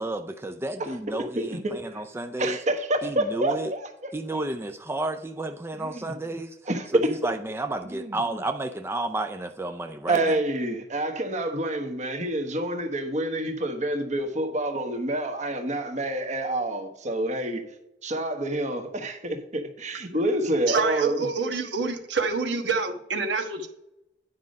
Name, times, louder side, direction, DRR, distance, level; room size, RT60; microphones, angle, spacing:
voice 1, 0.0-2.6 3.0-3.7 4.1-6.5 6.9-10.2, right 2 dB, 15° right, 0.4 m, -31 dB
voice 2, 1.4-2.0 2.4-4.1 5.8-6.1 6.7-7.1 7.9-8.2 10.1-17.6 18.0-21.2, right 1 dB, 45° right, 1.2 m, -28 dB
voice 3, 20.7-23.7, right 4 dB, 85° right, 1.3 m, -27 dB
9.6 x 5.3 x 5.1 m
head